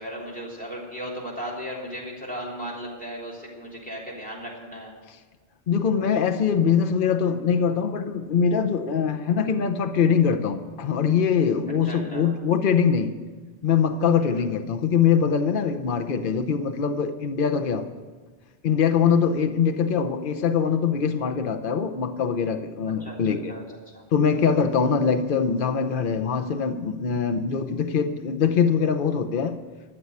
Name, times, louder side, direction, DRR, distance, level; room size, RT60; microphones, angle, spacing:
voice 1, 0.0-4.9 11.8-12.3 14.2-14.5 23.0-23.6 23.9-24.0 24.7-24.9, equal, 10° left, -4 dB, 3.4 m, -36 dB
voice 2, 5.7-13.1 13.6-17.9 18.6-23.5 24.1-29.6, left 6 dB, 55° left, 8 dB, 0.9 m, -23 dB
13.5 x 7.1 x 9.6 m, 1.4 s
omnidirectional pair, 1.1 m